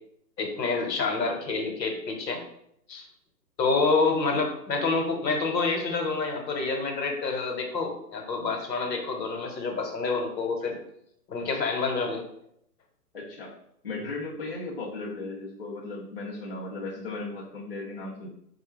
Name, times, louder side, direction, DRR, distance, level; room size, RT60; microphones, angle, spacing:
voice 1, 0.4-2.4 2.9-3.0 3.6-10.8 11.3-12.2, left 4 dB, 90° left, 3 dB, 1.0 m, -27 dB
voice 2, 13.1-13.5 13.8-18.3, left 2 dB, 35° left, -5 dB, 0.5 m, -36 dB
4.1 x 2.3 x 3.1 m, 0.73 s
hypercardioid pair, 175°, 49 cm